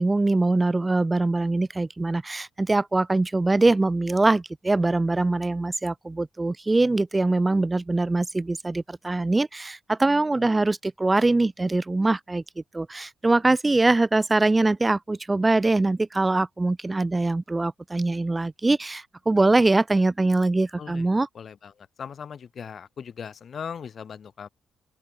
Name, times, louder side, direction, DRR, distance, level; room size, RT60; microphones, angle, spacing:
voice 1, 0.0-12.4 12.7-21.3, right 2 dB, 20° right, 1.4 m, -23 dB
voice 2, 21.3-24.5, left 7 dB, 50° left, 1.8 m, -39 dB
open air
cardioid pair, 90°, 0 cm